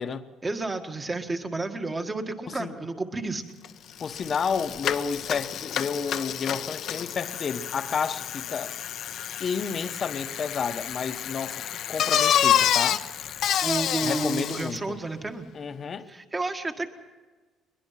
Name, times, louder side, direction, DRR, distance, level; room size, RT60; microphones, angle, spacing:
voice 1, 0.4-3.5 13.6-15.5 16.1-16.9, right 2 dB, 20° right, 1.8 m, -31 dB
Bicycle, 3.6-3.7 4.0-14.8, left 10 dB, 60° left, 0.9 m, -28 dB
voice 2, 4.0-8.8 9.4-13.0 14.0-15.0 15.5-16.1, left 6 dB, 40° left, 1.2 m, -31 dB
22.0 x 21.5 x 5.8 m
cardioid pair, 120°, 0 cm